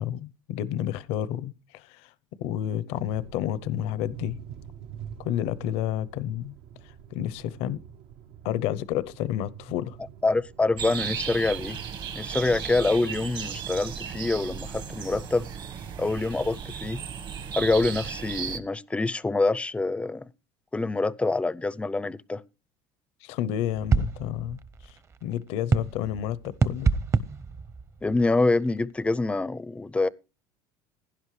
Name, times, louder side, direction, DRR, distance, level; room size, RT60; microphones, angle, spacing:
voice 1, 0.0-2.1 2.4-4.4 5.2-6.6 6.8-7.8 8.4-10.0 23.2-24.6 25.2-26.9, left 11 dB, 75° left, 0.8 m, -30 dB
sound 1, 3.0-16.3, right 9 dB, 70° right, 0.9 m, -47 dB
voice 2, 10.2-11.8 12.1-15.5 16.0-17.0 17.5-20.3 20.7-22.4 28.0-30.1, left 3 dB, 10° left, 0.5 m, -26 dB
sound 2, 10.8-18.6, right 8 dB, 45° right, 1.4 m, -35 dB
sound 3, 23.7-28.8, right 4 dB, 25° right, 0.8 m, -28 dB
16.5 x 11.0 x 3.2 m
supercardioid pair, 115°, 10 cm